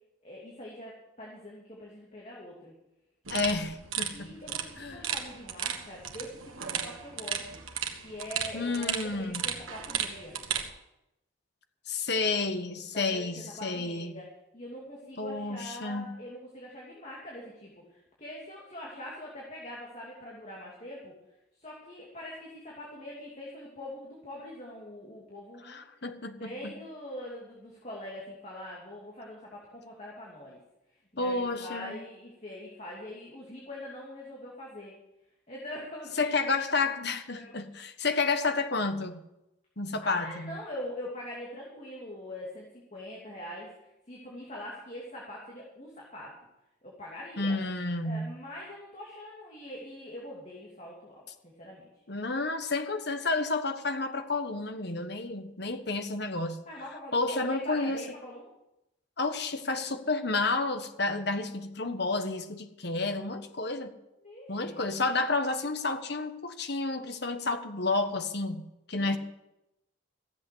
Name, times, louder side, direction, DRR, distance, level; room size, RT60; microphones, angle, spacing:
voice 1, 0.2-2.7 3.5-3.6 4.1-7.4 8.0-10.4 12.9-13.3 13.6-17.8 18.2-21.1 21.6-25.8 26.4-30.6 31.1-34.9 35.5-36.8 37.3-37.6 40.0-42.7 42.9-43.7 44.1-46.3 46.8-47.6 48.0-51.9 56.7-58.5 64.2-64.8 68.9-69.2, left 1 dB, 35° left, -4 dB, 2.9 m, -43 dB
voice 2, 3.3-4.3 4.8-5.1 8.5-9.5 11.9-14.2 15.2-16.1 25.6-26.7 31.2-32.0 36.2-39.2 39.8-40.6 47.4-48.4 52.1-56.6 57.1-58.0 59.2-63.9 64.5-69.2, left 3 dB, 55° left, 7 dB, 1.4 m, -31 dB
sound 1, 3.3-10.7, right 8 dB, 90° right, 1.6 m, -35 dB
15.0 x 8.2 x 8.0 m, 0.89 s
head